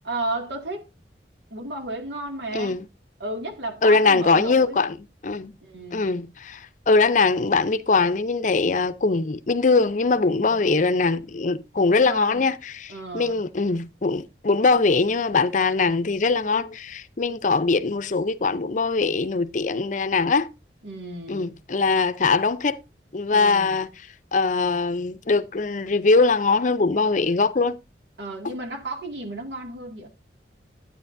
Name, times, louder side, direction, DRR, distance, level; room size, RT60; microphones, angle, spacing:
voice 1, 0.0-0.9 1.5-2.8 3.2-4.9 5.6-6.0 10.3-10.5 12.0-12.4 12.9-13.4 20.8-21.5 23.3-23.8 28.2-30.1, right 2 dB, 75° right, 2.2 m, -33 dB
voice 2, 2.5-2.8 3.8-5.0 5.2-5.5 5.9-20.5 21.3-22.8 23.1-23.9 24.3-27.8, left 3 dB, 45° left, 0.6 m, -22 dB
12.5 x 9.1 x 2.6 m
head